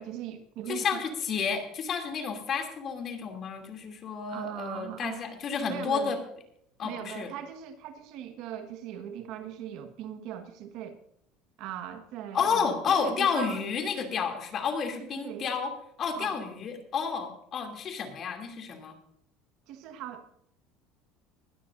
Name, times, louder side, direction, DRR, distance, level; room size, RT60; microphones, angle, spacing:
voice 1, 0.0-1.0 4.3-5.3 5.7-6.1 6.8-11.0 11.6-13.6 15.0-15.5 16.1-16.4 19.7-20.4, right 10 dB, 65° right, 1.5 m, -40 dB
voice 2, 0.7-6.2 6.8-7.3 12.3-15.7 16.0-19.0, left 6 dB, 40° left, 2.9 m, -31 dB
20.0 x 13.0 x 2.7 m
supercardioid pair, 125°, 0 cm